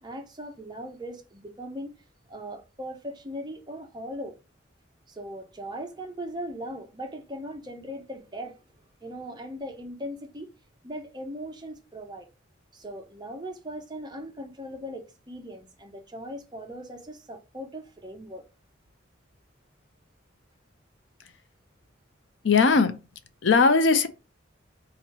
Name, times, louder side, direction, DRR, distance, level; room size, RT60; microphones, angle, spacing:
voice 1, 0.0-1.9 2.3-4.3 5.1-8.5 9.0-10.5 10.8-12.3 12.7-18.4, equal, 20° right, 0.8 m, -39 dB
voice 2, 22.4-22.9 23.4-24.1, left 4 dB, 65° left, 0.6 m, -19 dB
3.8 x 3.0 x 4.5 m
head